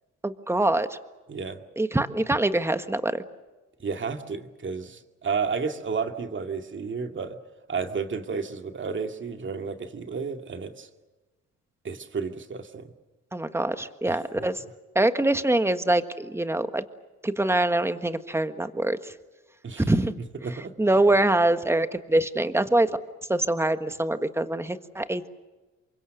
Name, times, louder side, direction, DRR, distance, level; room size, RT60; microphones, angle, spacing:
voice 1, 0.2-1.0 1.8-3.2 13.3-14.6 14.9-16.8 17.2-19.1 19.9-20.1 20.8-22.9 23.3-25.3, right 1 dB, 10° right, 10 dB, 1.6 m, -24 dB
voice 2, 1.3-1.6 3.8-7.4 7.7-10.9 11.8-12.9 14.1-14.5 19.6-19.9 20.4-20.7, right 5 dB, 40° right, 6 dB, 2.3 m, -32 dB
28.5 x 24.5 x 6.6 m, 1.2 s
cardioid pair, 90°, 30 cm